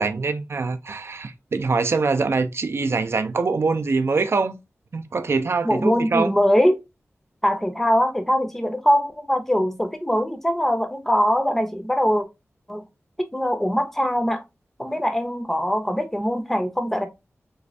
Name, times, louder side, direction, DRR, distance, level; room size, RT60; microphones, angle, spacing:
voice 1, 0.0-4.6 4.9-6.3, right 4 dB, 60° right, 0.4 m, -24 dB
voice 2, 5.6-6.8 7.4-12.2 12.7-12.8 13.3-14.4 14.8-17.1, equal, 5° left, 0.6 m, -22 dB
3.3 x 3.1 x 2.6 m
wide cardioid pair, 100°, 5 cm